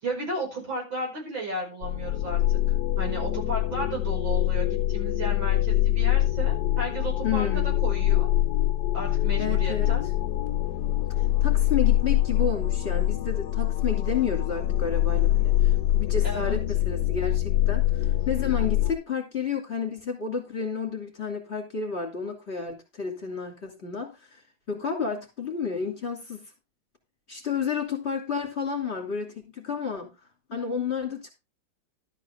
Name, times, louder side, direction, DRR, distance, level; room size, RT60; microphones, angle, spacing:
voice 1, 0.0-2.4 3.0-8.3 8.9-10.1 16.2-16.6, right 1 dB, 65° right, 1 dB, 6.2 m, -34 dB
sound 1, 1.8-18.9, left 14 dB, 65° left, 1.1 m, -24 dB
voice 2, 7.2-7.8 9.4-9.9 11.4-24.4 24.7-26.4 27.3-30.1 30.5-31.3, left 6 dB, 30° left, 2 dB, 2.8 m, -31 dB
12.5 x 8.5 x 3.5 m, 0.25 s
omnidirectional pair, 2.2 m